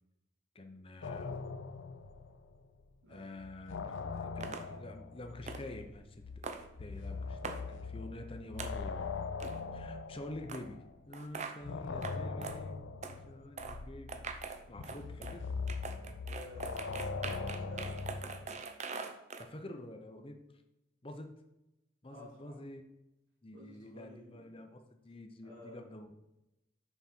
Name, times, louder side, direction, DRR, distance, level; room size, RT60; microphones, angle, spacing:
voice 1, 0.5-1.4 3.1-9.1 9.7-14.2 14.7-15.5 19.4-20.4 21.0-21.3 22.0-22.8 23.4-26.2, left 1 dB, 30° left, 6 dB, 0.7 m, -48 dB
sound 1, 1.0-2.9 3.2-11.1 11.6-18.5, left 4 dB, 65° left, 0.5 m, -41 dB
sound 2, 4.4-4.6 5.5-5.6 6.4-6.6 7.4-7.6 8.6-8.7 9.4-9.6 10.5-10.6 11.1-11.5 12.0-12.1 12.4-12.6 13.0-13.2 13.6-13.8 14.1-15.4 15.7-19.4, right 4 dB, 35° right, 0.6 m, -42 dB
voice 2, 16.3-18.0 22.1-22.6 23.5-24.7 25.4-25.9, left 1 dB, 70° right, -5 dB, 2.2 m, -53 dB
5.9 x 4.2 x 5.9 m, 0.93 s
head